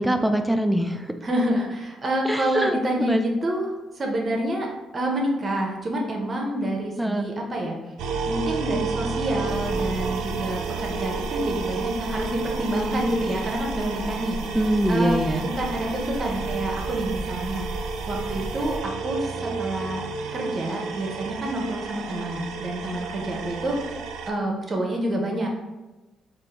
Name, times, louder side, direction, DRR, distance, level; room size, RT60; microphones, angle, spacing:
voice 1, 0.0-1.1 2.3-2.8 3.1-3.2 7.0-7.3 14.6-15.5, right 1 dB, 5° right, 6 dB, 0.3 m, -23 dB
voice 2, 1.2-4.7 4.9-7.8 8.2-14.4 14.9-17.7 18.1-23.8 24.3-25.5, right 1 dB, 40° right, 0 dB, 0.7 m, -28 dB
sound 1, 8.0-24.3, right 5 dB, 85° right, 0.3 m, -31 dB
sound 2, 9.5-18.8, equal, 55° left, 0.7 m, -37 dB
3.5 x 2.5 x 2.9 m, 1.1 s
cardioid pair, 90°, 0 cm